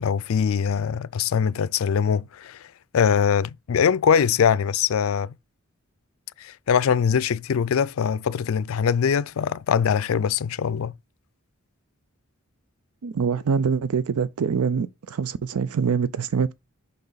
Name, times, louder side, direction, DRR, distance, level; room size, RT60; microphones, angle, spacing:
voice 1, 0.0-2.7 2.9-5.3 6.4-10.9, left 7 dB, 65° left, 0.4 m, -22 dB
voice 2, 13.0-16.5, right 6 dB, 85° right, 0.4 m, -24 dB
6.6 x 5.5 x 3.9 m
head